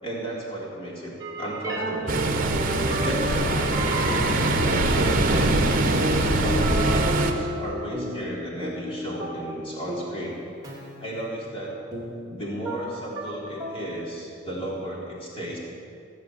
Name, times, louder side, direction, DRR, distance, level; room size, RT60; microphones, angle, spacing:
voice 1, 0.0-2.2 2.9-4.4 4.6-5.6 6.4-10.4 11.0-11.8 12.2-15.6, right 1 dB, 30° left, -5 dB, 3.7 m, -34 dB
sound 1, 1.2-13.9, right 1 dB, 20° right, 2.6 m, -34 dB
Ocean, 2.1-7.3, right 2 dB, 45° right, 1.2 m, -23 dB
17.5 x 8.2 x 8.1 m, 2.5 s
head